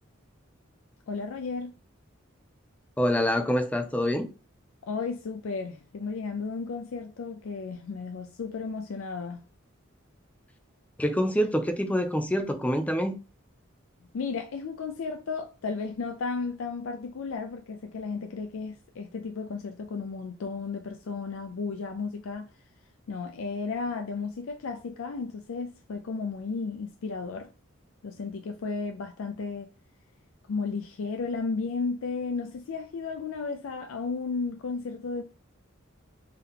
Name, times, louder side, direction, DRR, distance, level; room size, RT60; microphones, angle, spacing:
voice 1, 1.1-1.7 4.9-9.4 14.1-22.5 23.1-27.5 28.0-29.7 30.5-35.2, left 4 dB, 75° left, 0.4 m, -34 dB
voice 2, 3.0-4.3 11.0-13.1, equal, 5° left, 0.4 m, -26 dB
3.7 x 2.8 x 3.6 m
head